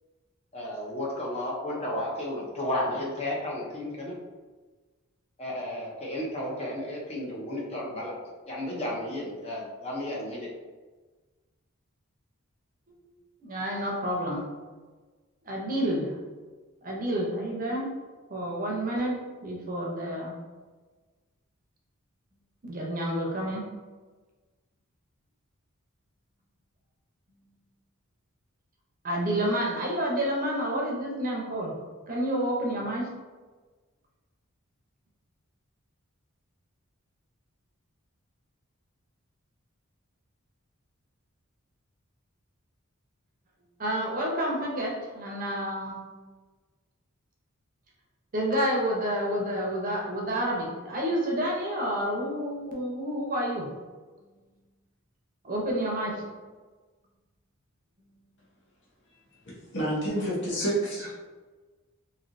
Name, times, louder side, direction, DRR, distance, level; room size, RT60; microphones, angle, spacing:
voice 1, 0.5-4.1 5.4-8.1 8.5-10.5, left 1 dB, 30° left, -3 dB, 0.7 m, -33 dB
voice 2, 13.4-14.4 15.4-16.1 16.8-17.9 18.3-19.1 19.4-20.3 22.6-23.6 29.0-31.7 32.1-33.1 43.8-46.0 48.3-53.7 55.4-56.2 58.0-58.1 60.2-60.3, equal, 40° right, -2 dB, 0.7 m, -29 dB
voice 3, 59.7-61.1, right 1 dB, 55° left, -5 dB, 1.0 m, -28 dB
3.1 x 2.8 x 2.6 m, 1.3 s
head